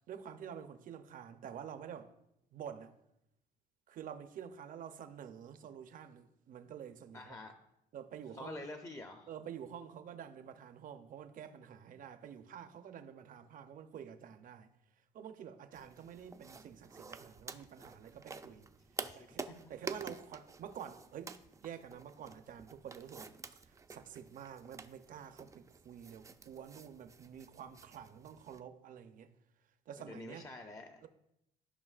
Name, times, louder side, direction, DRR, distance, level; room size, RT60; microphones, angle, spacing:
voice 1, 0.1-2.1 2.5-2.9 3.9-7.4 7.9-8.6 9.3-14.7 15.1-18.7 19.1-21.4 21.6-23.3 23.7-29.3 29.9-30.5 31.0-31.1, right 8 dB, 55° right, 0.7 m, -49 dB
voice 2, 7.1-7.5 8.3-9.3 19.0-19.7 30.0-31.1, left 2 dB, 20° left, 0.6 m, -48 dB
sound 1, 15.7-28.6, right 4 dB, 20° right, 0.4 m, -50 dB
13.5 x 5.3 x 2.4 m
cardioid pair, 110°, 17 cm